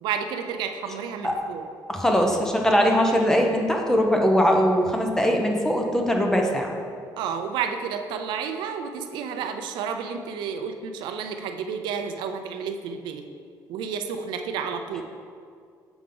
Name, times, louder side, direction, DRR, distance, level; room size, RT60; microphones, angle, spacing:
voice 1, 0.0-1.7 7.2-13.3 13.7-15.0, right 6 dB, 85° right, 7 dB, 0.5 m, -31 dB
voice 2, 1.9-6.7, equal, 5° left, 1 dB, 0.7 m, -21 dB
6.9 x 4.9 x 3.8 m, 2.2 s
cardioid pair, 135°, 8 cm